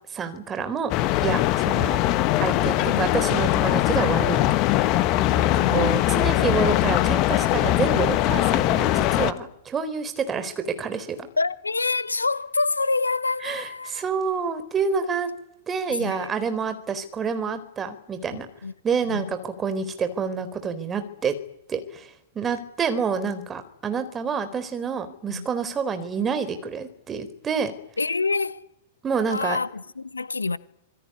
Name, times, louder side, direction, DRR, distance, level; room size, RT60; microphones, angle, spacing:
voice 1, 0.1-0.9 1.2-2.0 2.4-4.6 5.4-11.2 13.4-15.3 15.7-18.5 18.8-21.3 21.7-27.7 29.0-29.6, right 5 dB, 20° right, 4.0 m, -28 dB
sound 1, 0.9-9.3, left 15 dB, 40° left, 1.4 m, -21 dB
voice 2, 5.5-6.0 11.4-14.0 15.9-16.3 18.3-18.7 19.1-19.3 25.3-25.5 28.0-28.7 29.3-30.6, left 3 dB, 80° left, 1.2 m, -27 dB
26.5 x 21.5 x 9.7 m
figure-of-eight pair, 100°, 0 cm